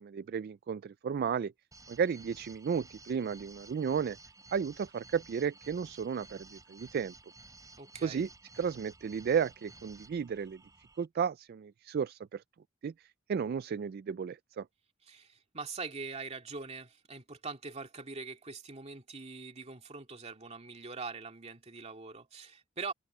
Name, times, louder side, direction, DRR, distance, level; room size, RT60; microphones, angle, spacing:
voice 1, 0.0-1.5 1.9-4.2 4.5-7.1 8.0-8.3 8.6-10.6 11.0-12.4 12.8-14.7, right 6 dB, 50° right, 0.3 m, -33 dB
sound 1, 1.7-11.0, right 2 dB, 20° right, 4.4 m, -55 dB
voice 2, 7.8-8.3 15.0-22.9, right 4 dB, 35° right, 2.4 m, -43 dB
open air
head